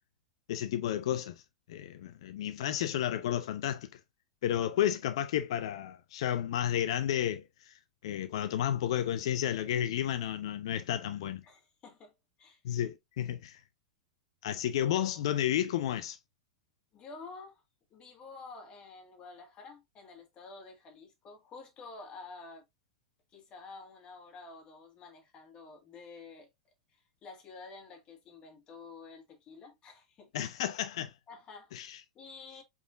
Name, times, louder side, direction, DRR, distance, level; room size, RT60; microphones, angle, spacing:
voice 1, 0.5-1.3 1.7-4.0 4.4-11.4 12.6-13.6 14.4-16.2 30.3-31.1 31.7-32.0, left 11 dB, 55° left, 0.5 m, -32 dB
voice 2, 11.4-12.1 12.4-12.8 16.9-17.6 17.9-22.6 23.3-26.5 26.9-30.3 31.3-31.9 32.2-32.6, left 4 dB, 30° left, 1.9 m, -50 dB
4.9 x 3.9 x 2.6 m
figure-of-eight pair, 95°, 3 cm